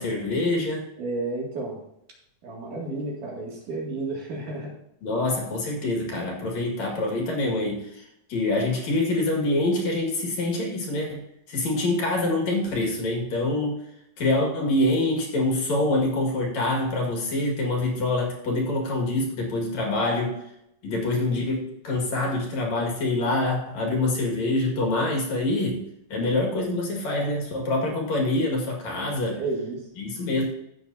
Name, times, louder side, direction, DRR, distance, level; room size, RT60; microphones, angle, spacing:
voice 1, 0.0-0.9 5.0-8.0 8.3-11.2 11.5-13.8 14.2-20.3 20.8-25.8 26.1-29.4 30.0-30.5, left 2 dB, 50° left, 0 dB, 2.6 m, -25 dB
voice 2, 1.0-1.8 2.4-4.7 29.3-29.8, right 2 dB, 55° right, -2 dB, 3.5 m, -31 dB
14.5 x 7.6 x 2.7 m, 0.79 s
omnidirectional pair, 4.8 m